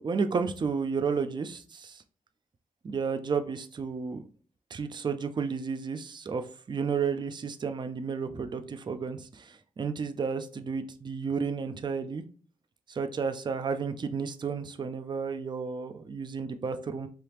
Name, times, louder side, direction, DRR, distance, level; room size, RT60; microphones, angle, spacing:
voice 1, 0.0-2.0 2.8-4.2 4.7-12.2 12.9-17.1, right 5 dB, 35° right, 8 dB, 0.4 m, -32 dB
3.4 x 2.8 x 3.0 m, 0.43 s
cardioid pair, 85°, 14 cm